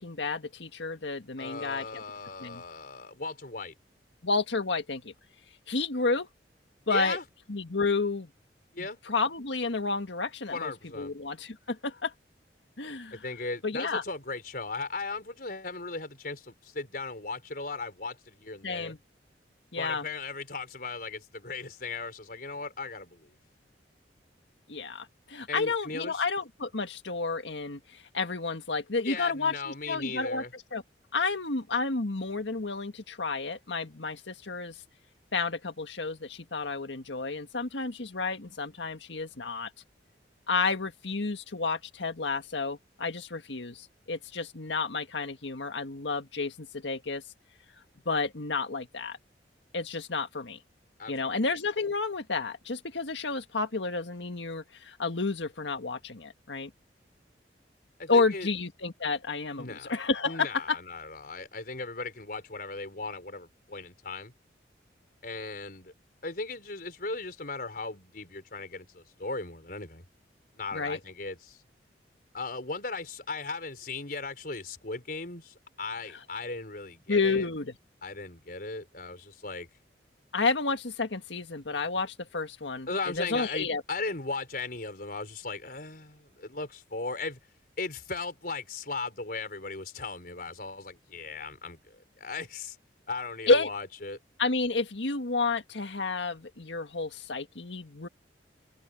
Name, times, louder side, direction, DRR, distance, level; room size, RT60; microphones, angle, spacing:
voice 1, 0.0-2.0 2.4-2.6 4.2-5.1 5.7-6.3 6.9-7.2 7.5-8.3 8.8-12.1 12.8-13.2 13.6-14.0 18.6-19.0 19.7-20.0 24.7-30.8 31.1-34.8 35.3-39.7 40.5-47.2 48.0-49.2 49.7-50.6 51.1-56.7 58.1-60.8 70.7-71.0 77.1-77.7 80.3-83.8 93.5-93.7 94.4-98.1, left 3 dB, 90° left, 1.7 m, -31 dB
voice 2, 1.4-3.7 6.9-7.2 8.7-9.0 10.5-11.1 13.1-18.9 19.8-23.3 25.5-26.2 29.0-30.5 51.0-51.4 58.0-58.5 59.6-59.9 60.2-64.3 65.2-65.9 66.2-70.0 70.5-71.6 72.3-77.5 78.0-79.7 82.9-87.4 87.8-92.8 93.1-94.2, left 3 dB, 55° left, 5.0 m, -37 dB
head